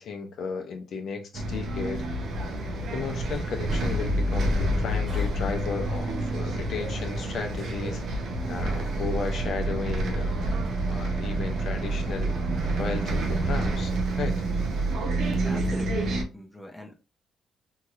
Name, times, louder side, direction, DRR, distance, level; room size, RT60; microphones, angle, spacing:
voice 1, 0.0-2.0 2.9-8.0 8.5-10.5 10.9-12.4 12.8-14.4, left 5 dB, 65° left, 0.6 m, -34 dB
Bus, 1.3-16.2, right 1 dB, 65° right, 0.6 m, -28 dB
sound 1, 2.2-14.0, right 1 dB, 25° right, 1.4 m, -44 dB
voice 2, 15.4-17.0, left 1 dB, ahead, 0.7 m, -42 dB
2.9 x 2.8 x 2.5 m
cardioid pair, 90°, 0 cm